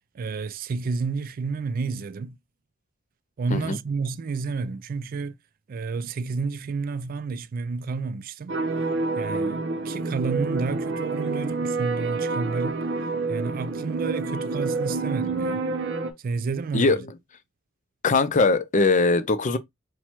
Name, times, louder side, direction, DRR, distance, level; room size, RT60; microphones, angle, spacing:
voice 1, 0.1-2.4 3.4-5.4 5.7-8.6 9.2-12.8 13.3-15.7 16.2-17.0, right 4 dB, 45° right, 0.3 m, -30 dB
sound 1, 8.5-16.1, right 3 dB, 60° right, 0.7 m, -28 dB
voice 2, 18.0-19.6, left 3 dB, 40° left, 0.5 m, -21 dB
4.4 x 2.2 x 4.3 m
head